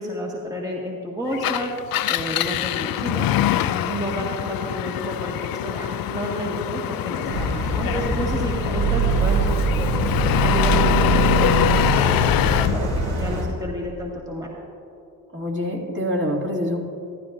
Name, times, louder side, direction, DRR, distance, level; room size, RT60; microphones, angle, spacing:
voice 1, 0.0-1.7 2.1-3.3 3.6-5.3 5.6-7.5 7.7-10.1 10.4-12.2 12.6-14.5, right 1 dB, 10° right, -3 dB, 1.6 m, -30 dB
Engine, 1.3-12.8, left 12 dB, 55° left, 0.5 m, -24 dB
sound 1, 7.3-13.5, right 4 dB, 65° right, 2.6 m, -23 dB
voice 2, 15.3-16.8, left 1 dB, 25° right, -1 dB, 2.1 m, -26 dB
14.5 x 12.5 x 2.5 m, 2.6 s
supercardioid pair, 55°, 42 cm